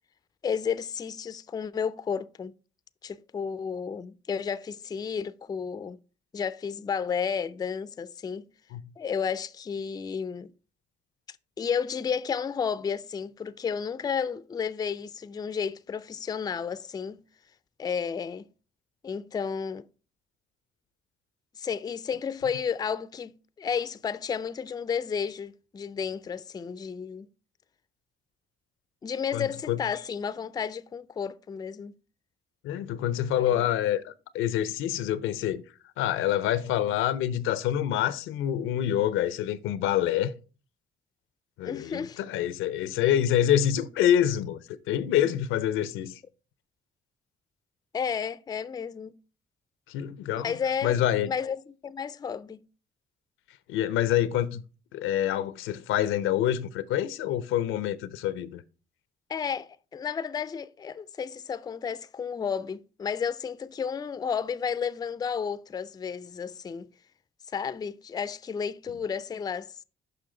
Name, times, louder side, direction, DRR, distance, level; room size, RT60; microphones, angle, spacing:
voice 1, 0.4-2.5 3.0-6.0 6.3-8.4 9.0-10.5 11.6-17.2 17.8-18.4 19.0-19.9 21.6-27.3 29.0-31.9 33.4-33.7 41.6-42.2 47.9-49.1 50.4-51.0 51.3-52.6 59.3-66.9 67.5-69.7, left 6 dB, 20° left, 0.3 m, -32 dB
voice 2, 29.3-29.8 32.6-35.6 36.0-40.3 41.6-46.1 49.9-50.5 50.8-51.3 53.7-54.6 54.9-58.6, left 11 dB, 90° left, 0.5 m, -26 dB
6.7 x 5.6 x 3.7 m
cardioid pair, 90°, 20 cm